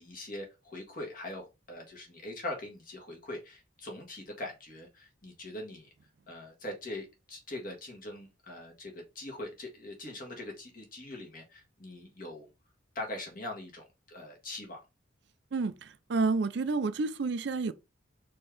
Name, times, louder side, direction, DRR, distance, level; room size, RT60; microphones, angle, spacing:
voice 1, 0.0-5.9 6.3-12.5 12.9-14.8, left 1 dB, 45° left, 1.7 m, -42 dB
voice 2, 15.5-17.7, right 4 dB, 55° right, 0.4 m, -30 dB
4.4 x 3.7 x 3.3 m
head